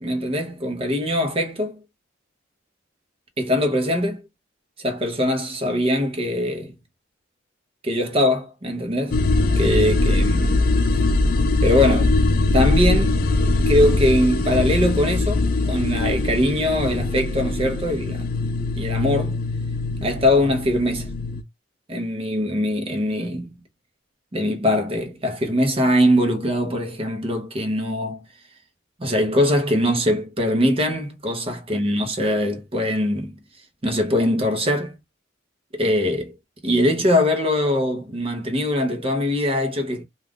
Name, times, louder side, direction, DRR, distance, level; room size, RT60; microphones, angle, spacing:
voice 1, 0.0-1.8 3.4-4.2 4.8-6.8 7.8-9.2 9.6-10.6 11.6-12.2 12.5-13.2 13.7-18.2 18.8-19.4 20.0-21.1 21.9-23.6 24.3-28.2 29.0-33.3 33.8-35.0 35.7-36.3 36.6-40.0, left 1 dB, 30° right, 0.8 m, -22 dB
sound 1, 9.1-21.4, left 2 dB, 50° left, 0.4 m, -21 dB
2.4 x 2.4 x 3.4 m
head